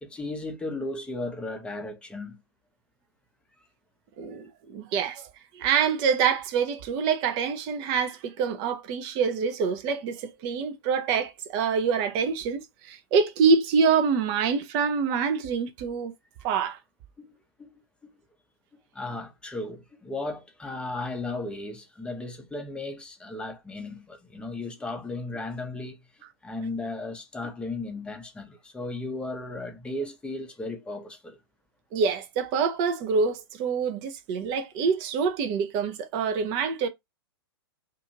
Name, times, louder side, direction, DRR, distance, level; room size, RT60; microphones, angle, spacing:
voice 1, 0.0-2.4 17.2-17.8 18.7-31.4, left 2 dB, 10° left, 0.7 m, -35 dB
voice 2, 4.2-5.2 5.5-16.1 16.4-16.8 31.9-36.9, right 5 dB, 35° right, 0.6 m, -26 dB
2.5 x 2.5 x 2.9 m
figure-of-eight pair, 105°, 13 cm